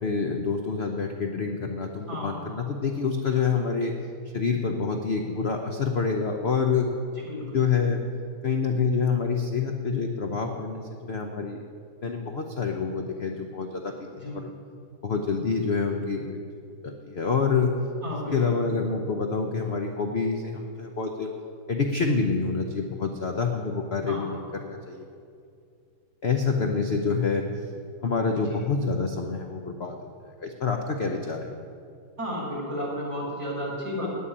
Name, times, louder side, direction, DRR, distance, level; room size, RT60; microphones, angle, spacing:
voice 1, 0.0-3.9 4.3-6.9 7.5-8.0 8.4-11.6 12.0-14.5 15.0-16.4 16.8-17.7 18.3-21.3 21.7-25.0 26.2-27.5 28.0-31.5, left 5 dB, 55° left, 3 dB, 0.7 m, -27 dB
voice 2, 7.2-7.6 14.1-14.4 18.0-18.6 24.1-24.3 28.5-28.6 32.2-34.1, equal, 35° right, -5 dB, 4.7 m, -33 dB
17.0 x 5.6 x 9.9 m, 2.4 s
omnidirectional pair, 2.2 m